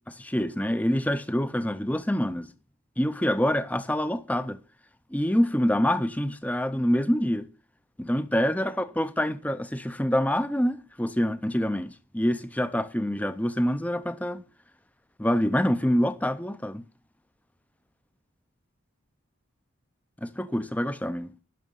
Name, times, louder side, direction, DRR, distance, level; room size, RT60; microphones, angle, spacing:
voice 1, 0.1-2.5 3.0-4.6 5.1-7.5 8.0-14.4 15.2-16.8 20.2-21.3, equal, 5° left, 0.6 m, -26 dB
11.0 x 6.2 x 6.9 m
head